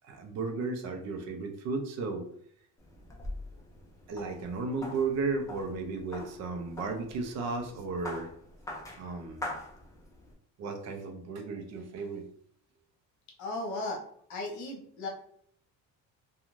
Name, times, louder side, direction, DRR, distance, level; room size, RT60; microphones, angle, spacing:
voice 1, 0.0-2.3 4.1-8.3 9.0-9.4 10.6-12.3, right 4 dB, 50° right, 5 dB, 0.6 m, -34 dB
sound 1, 2.8-10.3, left 1 dB, 10° left, 0.4 m, -44 dB
voice 2, 13.4-14.0 14.3-15.1, left 2 dB, 55° left, 1 dB, 1.0 m, -35 dB
2.5 x 2.3 x 3.0 m, 0.64 s
cardioid pair, 160°, 34 cm